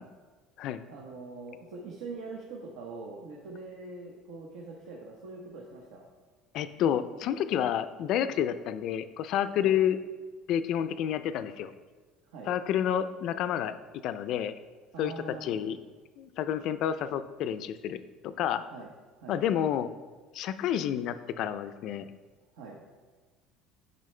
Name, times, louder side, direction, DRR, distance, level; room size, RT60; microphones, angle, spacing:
voice 1, 0.8-6.1 9.6-9.7 12.3-12.5 14.9-15.6 18.7-18.9 19.2-19.4 22.5-22.8, right 3 dB, 80° right, -2 dB, 1.0 m, -43 dB
voice 2, 6.5-10.0 10.5-11.7 12.5-13.7 14.0-14.5 15.0-15.8 16.2-18.6 19.3-19.9 20.3-22.1, left 10 dB, 50° left, 12 dB, 0.4 m, -29 dB
9.1 x 5.5 x 3.3 m, 1.4 s
cardioid pair, 150°, 0 cm